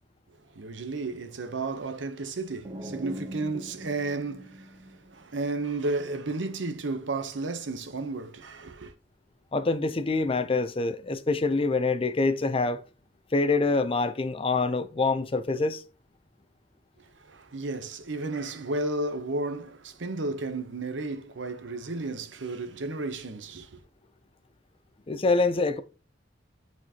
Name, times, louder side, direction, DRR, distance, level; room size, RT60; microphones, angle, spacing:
voice 1, 0.5-8.9 17.3-23.8, right 2 dB, 80° right, 0.8 m, -33 dB
sound 1, 2.6-5.4, equal, 25° right, 0.7 m, -42 dB
voice 2, 9.5-12.8 13.3-15.8 25.1-25.8, left 3 dB, 30° left, 0.5 m, -25 dB
10.5 x 4.5 x 2.9 m
head